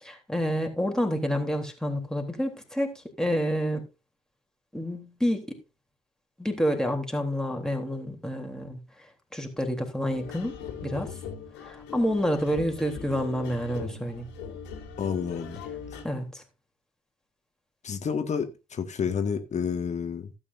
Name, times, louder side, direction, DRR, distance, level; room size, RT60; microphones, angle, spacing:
voice 1, 0.0-3.8 4.7-5.6 6.4-8.8 9.3-11.1 11.6-14.3 16.0-16.4, equal, 5° left, 3.3 m, -28 dB
sound 1, 10.1-16.0, left 6 dB, 60° left, 2.6 m, -40 dB
voice 2, 15.0-15.6 15.9-16.0 17.8-20.3, left 6 dB, 35° left, 1.8 m, -30 dB
16.0 x 8.9 x 2.6 m
figure-of-eight pair, 50°, 20 cm